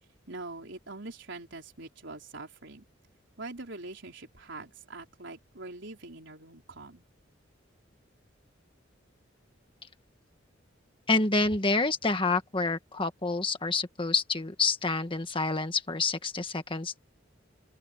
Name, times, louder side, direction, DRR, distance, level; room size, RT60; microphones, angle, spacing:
voice 1, 0.3-2.8 3.4-7.0, right 2 dB, 65° right, 4.5 m, -43 dB
voice 2, 11.1-17.0, left 3 dB, 25° left, 1.7 m, -28 dB
open air
head